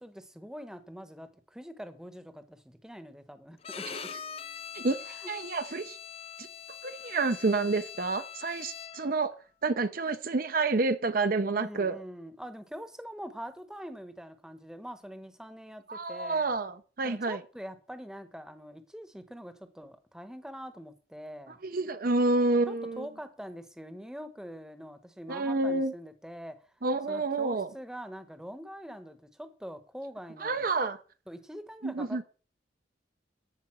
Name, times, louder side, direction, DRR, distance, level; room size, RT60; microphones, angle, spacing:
voice 1, 0.0-4.1 5.1-5.3 11.5-16.5 17.0-21.6 22.7-26.6 27.1-30.7 31.3-32.2, equal, 5° right, 1.0 m, -44 dB
Bowed string instrument, 3.6-9.2, left 8 dB, 30° left, 0.6 m, -43 dB
voice 2, 4.7-6.0 6.4-6.5 6.8-9.3 9.6-12.0 15.9-17.4 21.6-23.1 25.3-25.9 26.8-27.7 30.4-31.0 31.8-32.2, right 3 dB, 50° right, 0.6 m, -29 dB
12.5 x 5.1 x 7.4 m
head